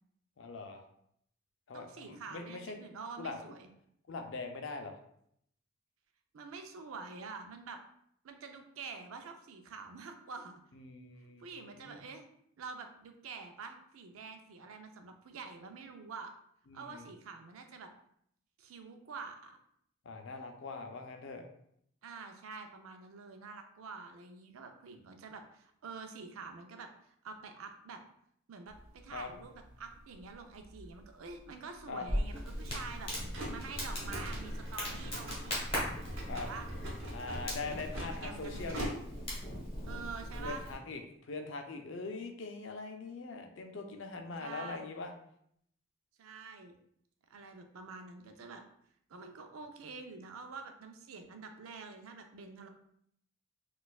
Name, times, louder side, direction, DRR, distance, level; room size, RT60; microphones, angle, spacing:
voice 1, 0.4-0.8 1.7-2.8 3.2-3.4 4.1-5.0 10.7-11.4 11.8-12.0 16.7-17.0 20.1-21.5 29.1-29.3 31.9-32.1 36.3-36.5 37.1-38.9 40.4-45.1, left 3 dB, 65° left, 5 dB, 0.5 m, -42 dB
voice 2, 1.7-3.7 6.3-7.8 8.2-10.6 11.4-12.3 12.6-16.3 16.7-17.9 18.6-19.6 22.0-26.9 27.2-28.0 28.5-28.7 29.0-33.1 33.5-35.6 36.3-36.7 37.5-38.9 39.9-40.6 44.4-44.9 46.2-46.8 47.3-48.6 49.1-52.7, right 4 dB, 85° right, 5 dB, 0.5 m, -47 dB
sound 1, 28.7-39.4, right 1 dB, 70° right, 0.9 m, -46 dB
Crackle, 32.1-40.7, equal, 25° left, 1.1 m, -39 dB
4.1 x 2.4 x 2.3 m, 0.70 s
head